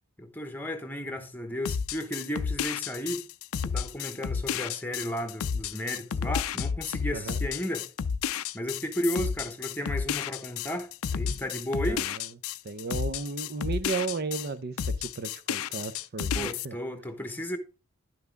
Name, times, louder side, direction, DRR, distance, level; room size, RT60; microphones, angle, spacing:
voice 1, 0.2-3.2 3.6-7.9 8.5-12.0 16.3-17.6, equal, 10° left, 0.9 m, -34 dB
sound 1, 1.7-14.5 14.8-16.7, left 7 dB, 75° left, 0.4 m, -31 dB
voice 2, 7.1-7.4 11.3-11.4 11.8-12.2 12.6-16.8, right 4 dB, 45° right, 0.6 m, -34 dB
11.0 x 5.9 x 3.4 m
head